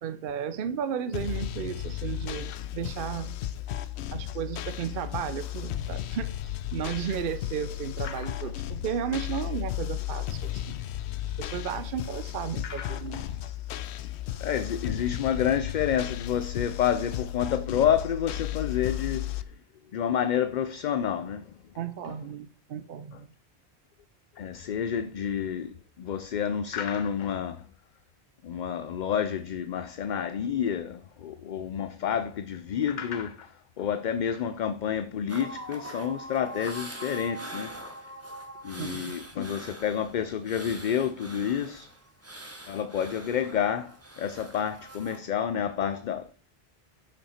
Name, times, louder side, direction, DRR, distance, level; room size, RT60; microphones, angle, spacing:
voice 1, 0.0-3.3 4.1-10.8 11.4-13.2 21.8-23.3 38.8-39.1, right 8 dB, 60° right, 0.7 m, -34 dB
sound 1, 1.1-19.4, left 13 dB, 90° left, 0.9 m, -34 dB
voice 2, 12.6-13.2 14.4-19.3 19.9-21.4 24.4-27.6 28.4-37.7 38.6-41.9 42.7-46.3, left 8 dB, 55° left, 0.6 m, -29 dB
sound 2, 35.3-45.2, right 1 dB, 15° right, 1.1 m, -43 dB
9.7 x 5.6 x 4.3 m
omnidirectional pair, 1.1 m